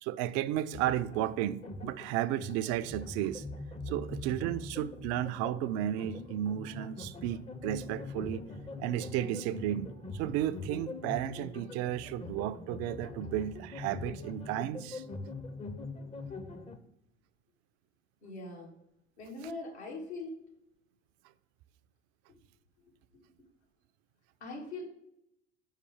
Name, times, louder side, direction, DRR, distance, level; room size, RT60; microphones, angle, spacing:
voice 1, 0.0-3.4 3.9-8.4 8.8-15.0, right 12 dB, 50° right, 0.4 m, -33 dB
sound 1, 0.7-16.8, left 3 dB, 20° left, 0.6 m, -43 dB
voice 2, 18.2-18.7 19.2-20.4 24.4-24.8, left 2 dB, 75° left, 1.8 m, -41 dB
5.6 x 5.0 x 4.9 m
figure-of-eight pair, 65°, 34 cm